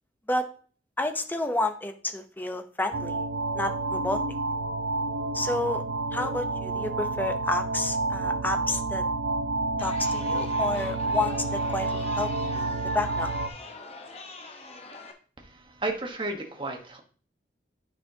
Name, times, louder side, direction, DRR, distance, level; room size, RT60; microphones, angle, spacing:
voice 1, 1.0-3.2 3.5-4.2 5.3-5.8 6.1-9.0 9.8-13.3, left 2 dB, 10° left, 7 dB, 0.7 m, -30 dB
sound 1, 2.9-13.5, right 3 dB, 90° right, 0.7 m, -29 dB
Chatter, 9.8-15.1, left 3 dB, 35° left, 1.0 m, -43 dB
voice 2, 15.4-17.0, right 2 dB, 30° right, 2 dB, 1.2 m, -33 dB
9.3 x 5.8 x 2.8 m, 0.41 s
head